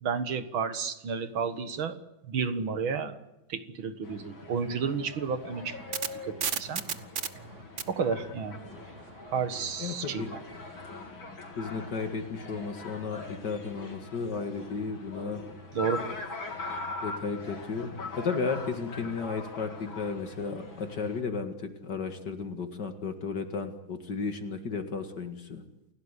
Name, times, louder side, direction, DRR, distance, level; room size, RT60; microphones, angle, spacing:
voice 1, 0.0-3.2 3.5-5.8 6.2-6.8 7.9-8.6 9.3-10.4 15.7-16.1, right 6 dB, 75° right, 10 dB, 2.3 m, -31 dB
sound 1, 4.0-21.2, left 3 dB, 70° left, 4.3 m, -42 dB
sound 2, 5.5-9.8, right 7 dB, 45° right, 1.2 m, -35 dB
voice 2, 9.8-10.3 11.6-15.4 17.0-25.6, left 5 dB, 55° left, 7 dB, 2.4 m, -34 dB
29.0 x 17.0 x 8.3 m, 0.93 s
omnidirectional pair, 2.2 m